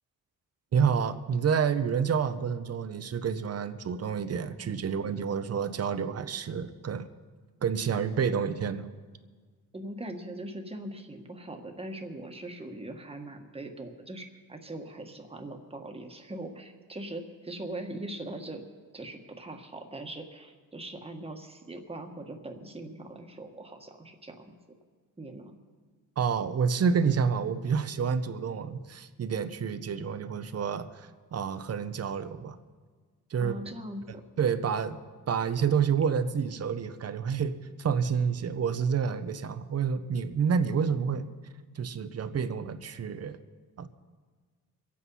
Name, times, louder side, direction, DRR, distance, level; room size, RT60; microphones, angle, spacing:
voice 1, 0.7-7.1 7.6-8.8 26.2-32.6 33.3-33.6 34.4-35.0 35.3-41.3 41.8-43.4 43.8-43.9, right 6 dB, 50° right, 11 dB, 0.8 m, -29 dB
voice 2, 9.7-18.6 18.9-24.5 25.2-25.5 33.4-34.2, right 1 dB, 20° right, 3 dB, 1.5 m, -41 dB
24.5 x 8.5 x 5.5 m, 1.5 s
wide cardioid pair, 130°, 32 cm